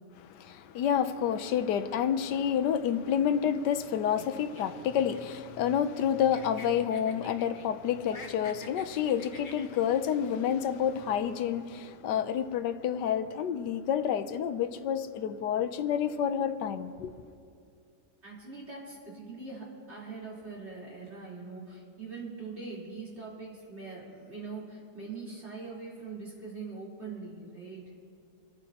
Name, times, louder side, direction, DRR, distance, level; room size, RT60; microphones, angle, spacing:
voice 1, 0.3-17.1, left 8 dB, 85° left, 1.3 m, -29 dB
sound 1, 4.2-6.0 6.3-7.7 8.0-10.0, left 3 dB, 35° left, 1.0 m, -48 dB
voice 2, 18.2-27.8, right 4 dB, 40° right, 4.0 m, -42 dB
26.5 x 13.5 x 2.9 m
omnidirectional pair, 1.8 m